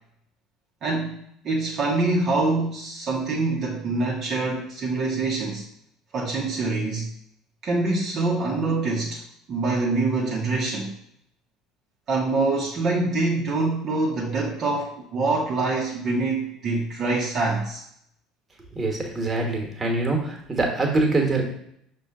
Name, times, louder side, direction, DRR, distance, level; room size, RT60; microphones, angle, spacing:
voice 1, 0.8-5.6 6.1-7.1 7.6-9.2 9.5-10.9 12.1-17.8, right 3 dB, 45° right, -3 dB, 0.7 m, -25 dB
voice 2, 18.7-21.4, right 2 dB, 20° right, 1 dB, 1.2 m, -24 dB
6.0 x 2.3 x 3.6 m, 0.71 s
figure-of-eight pair, 65°, 0 cm